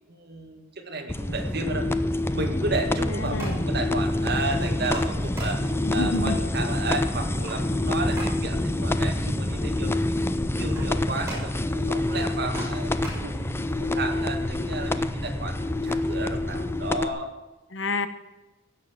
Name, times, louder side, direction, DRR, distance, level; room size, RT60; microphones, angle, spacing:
voice 1, 0.1-1.9 2.3-5.6 5.9-15.6 15.8-17.3, right 2 dB, 60° right, 3 dB, 2.2 m, -33 dB
sound 1, 1.1-17.1, left 1 dB, 15° left, 0.6 m, -27 dB
sound 2, 3.0-13.8, right 1 dB, 15° right, 6.2 m, -43 dB
voice 2, 3.1-3.7 5.9-6.4 17.7-18.1, left 2 dB, 70° left, 11 dB, 1.1 m, -29 dB
16.5 x 6.8 x 7.7 m, 1.0 s
head